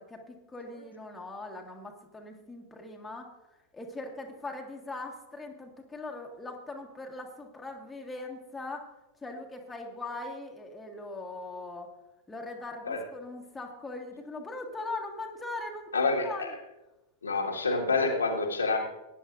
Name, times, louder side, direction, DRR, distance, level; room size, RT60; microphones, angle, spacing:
voice 1, 0.0-3.3 3.7-8.9 9.2-11.9 12.3-16.5, left 2 dB, 10° left, 1 dB, 1.6 m, -40 dB
voice 2, 15.9-16.5 17.2-18.8, left 3 dB, 75° left, 0 dB, 1.7 m, -27 dB
19.0 x 10.0 x 2.6 m, 1.0 s
figure-of-eight pair, 90°, 0 cm